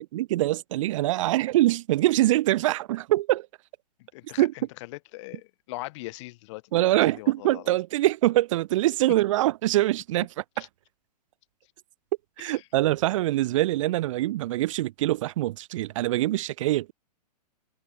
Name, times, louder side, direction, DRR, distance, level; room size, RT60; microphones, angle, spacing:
voice 1, 0.0-3.5 4.4-4.5 6.7-10.3 12.4-16.9, right 16 dB, 50° right, 3.4 m, -24 dB
voice 2, 4.0-6.9 7.2-7.7 10.6-10.7 12.4-12.6, left 21 dB, 45° left, 6.1 m, -41 dB
figure-of-eight pair, 115°, 21 cm